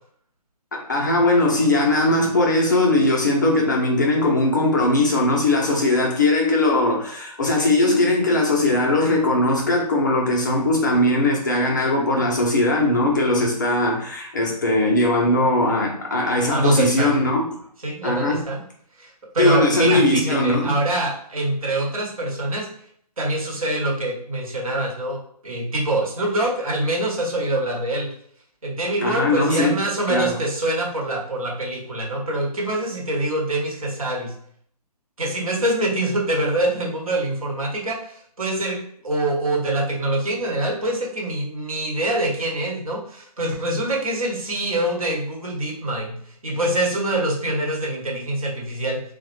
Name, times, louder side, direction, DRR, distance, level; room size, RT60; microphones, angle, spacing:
voice 1, 0.7-17.5 18.0-18.5 19.4-20.7 29.0-29.8 30.1-30.4, left 2 dB, 30° left, 0.5 m, -20 dB
voice 2, 16.5-17.1 17.8-18.6 19.0-22.7 23.2-28.1 28.6-34.3 35.2-38.8 39.0-49.0, right 1 dB, 55° right, 1.0 m, -25 dB
3.1 x 2.1 x 3.0 m
figure-of-eight pair, 140°, 21 cm